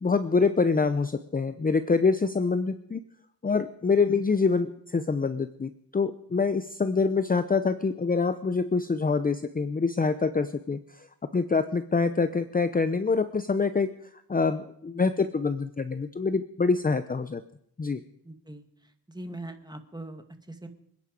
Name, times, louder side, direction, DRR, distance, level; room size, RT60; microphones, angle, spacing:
voice 1, 0.0-3.0 3.4-10.8 11.3-13.9 14.3-17.4 17.8-18.0, left 4 dB, 20° left, 11 dB, 0.7 m, -25 dB
voice 2, 18.2-18.7 19.1-20.7, right 1 dB, 10° right, 7 dB, 1.9 m, -41 dB
26.0 x 10.0 x 5.2 m, 0.68 s
wide cardioid pair, 100°, 39 cm